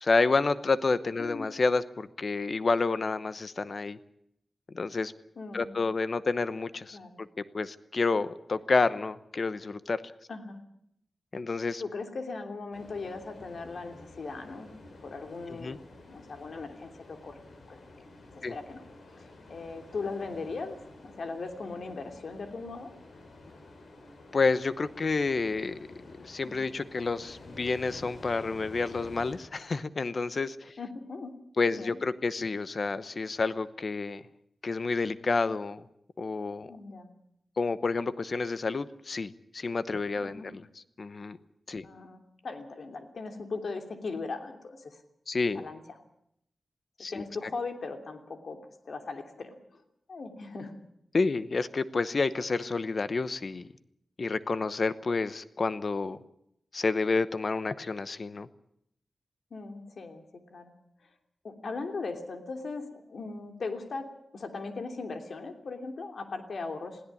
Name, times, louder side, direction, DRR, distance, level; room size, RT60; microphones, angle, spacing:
voice 1, 0.0-4.0 4.7-5.1 5.5-7.3 7.5-10.0 11.3-11.8 15.5-15.8 18.4-18.5 24.3-25.8 26.1-30.7 31.6-34.2 34.6-35.8 36.2-36.7 37.6-40.6 41.0-41.4 41.7-41.8 45.3-45.6 47.0-47.2 51.1-53.7 54.2-56.2 56.7-58.5, left 4 dB, 45° left, 14 dB, 0.9 m, -29 dB
voice 2, 5.4-5.7 6.9-7.2 10.3-10.6 11.8-14.7 15.0-17.4 17.7-17.8 18.5-18.8 19.1-20.8 21.0-22.9 26.4-26.6 30.8-31.3 31.8-32.0 36.7-37.2 40.2-40.5 41.8-45.0 45.5-45.8 47.1-48.6 48.8-49.6 50.1-50.7 59.5-60.7 61.4-64.1 64.3-67.0, left 3 dB, 65° left, 5 dB, 3.0 m, -38 dB
sound 1, 12.7-29.4, left 2 dB, 85° left, 6.0 m, -50 dB
21.5 x 16.5 x 8.5 m, 0.75 s
wide cardioid pair, 135°, 0 cm